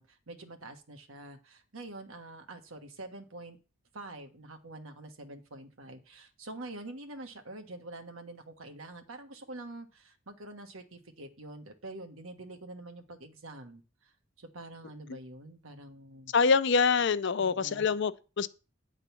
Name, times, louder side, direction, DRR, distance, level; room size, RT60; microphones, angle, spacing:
voice 1, 0.0-3.6 3.9-16.3 17.4-17.9, right 2 dB, 85° right, 1.4 m, -46 dB
voice 2, 16.3-18.5, left 5 dB, 60° left, 0.5 m, -25 dB
9.2 x 4.0 x 7.0 m
head